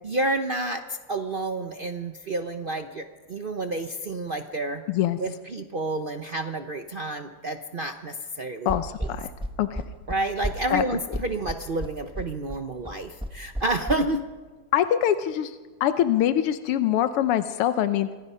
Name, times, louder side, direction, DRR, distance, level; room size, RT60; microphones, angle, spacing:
voice 1, 0.0-4.8 5.2-8.7 9.0-9.1 10.1-14.2, right 2 dB, 85° right, 6 dB, 0.4 m, -29 dB
voice 2, 4.9-5.2 8.7-9.3 9.6-9.8 10.7-10.8 14.7-18.1, left 11 dB, 90° left, 10 dB, 1.8 m, -24 dB
sound 1, 8.7-14.0, equal, 5° right, 0.7 m, -32 dB
26.5 x 23.5 x 5.6 m, 1.4 s
omnidirectional pair, 2.4 m